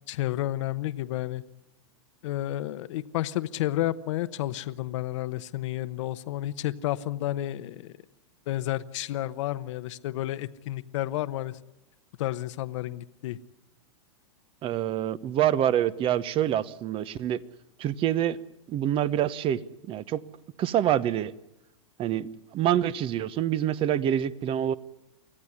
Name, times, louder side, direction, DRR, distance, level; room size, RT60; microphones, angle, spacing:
voice 1, 0.1-1.4 2.2-7.9 8.5-11.6 12.2-13.4, left 14 dB, 60° left, 1.0 m, -31 dB
voice 2, 14.6-17.4 17.8-18.4 18.7-19.6 19.9-20.2 20.6-21.3 22.0-24.7, right 11 dB, 30° right, 1.0 m, -26 dB
25.0 x 15.5 x 9.9 m
hypercardioid pair, 120°, 17 cm